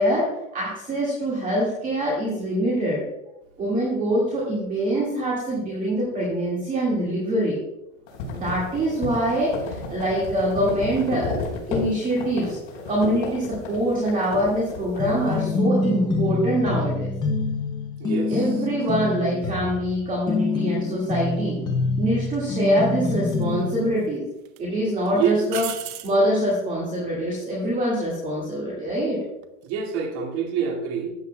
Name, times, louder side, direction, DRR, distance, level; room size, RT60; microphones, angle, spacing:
voice 1, 0.0-3.0 3.6-7.6 8.3-11.4 11.7-12.6 12.9-17.1 18.3-21.6 22.0-24.3 24.6-25.6 26.0-29.2, equal, 20° right, -5 dB, 1.9 m, -24 dB
sound 1, 8.1-15.5, left 4 dB, 45° left, 3.5 m, -32 dB
sound 2, 15.0-23.9, left 3 dB, 10° left, 0.4 m, -26 dB
voice 2, 18.0-18.5 25.1-25.4 29.6-31.1, right 7 dB, 55° right, 1 dB, 2.0 m, -26 dB
sound 3, 22.1-22.3 23.4-24.1 24.4-24.6 25.5-26.2 29.3-29.7, right 13 dB, 85° right, 0.8 m, -35 dB
13.5 x 7.9 x 2.2 m, 0.86 s
supercardioid pair, 160°, 40 cm